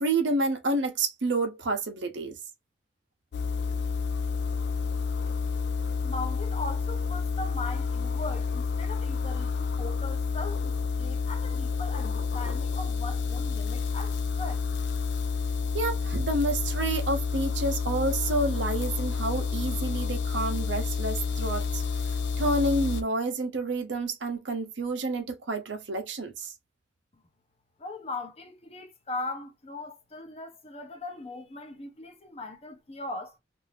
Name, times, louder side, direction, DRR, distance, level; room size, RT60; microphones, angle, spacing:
voice 1, 0.0-2.4 15.7-21.8 22.4-26.5, right 2 dB, 85° right, 0.8 m, -29 dB
sound 1, 3.3-23.0, left 5 dB, 65° left, 0.4 m, -29 dB
voice 2, 6.0-14.7 27.8-33.4, left 2 dB, 35° left, 0.7 m, -39 dB
2.6 x 2.5 x 3.3 m
head